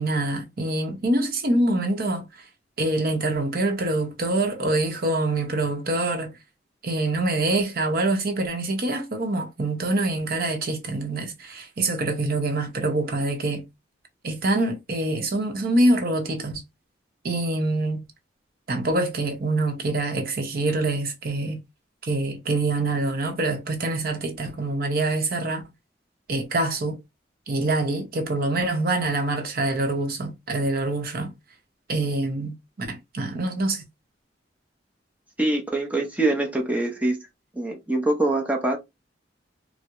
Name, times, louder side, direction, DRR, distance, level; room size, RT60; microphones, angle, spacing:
voice 1, 0.0-2.3 2.8-6.3 6.8-13.7 14.2-16.6 17.2-18.0 18.7-21.6 22.0-25.6 26.3-27.0 27.5-31.3 31.9-33.8, right 2 dB, 55° right, 0.7 m, -25 dB
voice 2, 35.4-37.3 37.5-38.8, right 2 dB, 10° right, 0.6 m, -24 dB
4.4 x 2.0 x 2.4 m
head